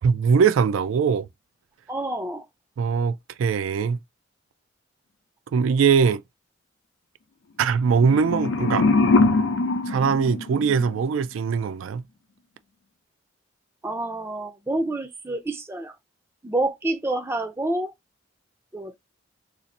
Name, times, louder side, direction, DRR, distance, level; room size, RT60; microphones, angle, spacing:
voice 1, 0.0-1.3 2.8-4.0 5.5-6.2 7.6-8.9 9.9-12.0, right 6 dB, 85° right, 0.3 m, -21 dB
voice 2, 1.9-2.5 13.8-16.0 16.4-17.9 18.7-19.0, right 2 dB, 10° right, 0.4 m, -28 dB
sound 1, 7.9-11.0, left 3 dB, 90° left, 0.6 m, -22 dB
2.7 x 2.5 x 4.0 m
head